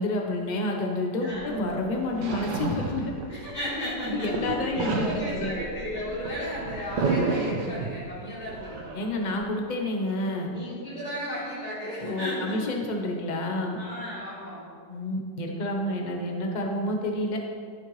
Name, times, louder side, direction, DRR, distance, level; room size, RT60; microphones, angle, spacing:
voice 1, 0.0-3.1 4.0-5.6 8.9-10.5 12.0-13.8 14.9-17.4, left 1 dB, 35° left, 1 dB, 0.8 m, -29 dB
sound 1, 1.3-3.7 4.0-8.1 8.5-9.4, right 3 dB, 65° right, 1.6 m, -31 dB
voice 2, 3.3-8.9 10.4-12.8 13.7-14.6, equal, 70° left, -12 dB, 3.4 m, -34 dB
13.5 x 6.6 x 3.2 m, 2.1 s
omnidirectional pair, 2.1 m